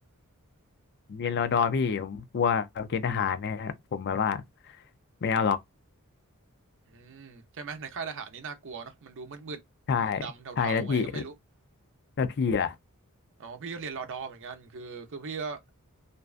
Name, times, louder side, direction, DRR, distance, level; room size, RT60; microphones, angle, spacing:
voice 1, 1.1-4.4 5.2-5.6 9.9-10.2 10.6-11.2 12.2-12.8, left 6 dB, 50° left, 0.4 m, -27 dB
voice 2, 6.9-9.6 10.0-11.3 13.4-15.6, right 5 dB, 60° right, 0.6 m, -39 dB
2.6 x 2.2 x 2.4 m
head